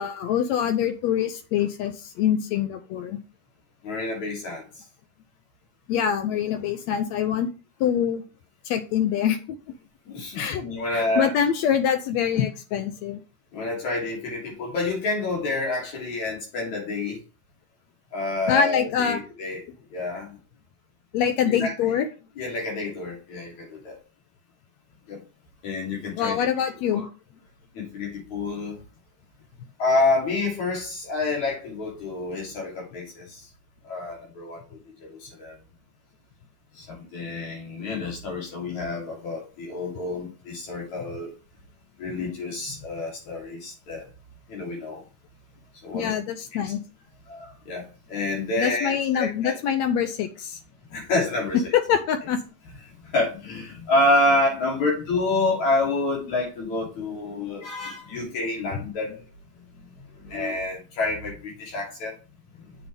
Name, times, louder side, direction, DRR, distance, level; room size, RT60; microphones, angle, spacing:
voice 1, 0.0-3.2 5.9-7.5 7.8-8.2 8.6-9.6 10.4-13.2 18.5-19.2 21.1-22.1 26.2-27.1 45.9-46.8 48.6-50.6 51.7-52.4, left 8 dB, 80° left, 8 dB, 1.6 m, -24 dB
voice 2, 3.8-4.6 10.1-11.3 13.5-17.2 18.1-19.6 19.9-20.4 21.5-21.7 22.4-24.0 25.1-25.2 25.6-26.5 26.9-27.1 27.7-28.8 29.8-33.4 33.8-35.6 36.8-41.3 42.0-44.0 44.5-45.0 45.8-46.1 46.5-46.7 47.3-49.6 50.9-51.6 53.0-59.2 59.8-59.9 60.2-62.1, left 2 dB, 60° left, -3 dB, 4.5 m, -28 dB
8.1 x 7.6 x 3.5 m, 0.33 s
omnidirectional pair, 3.8 m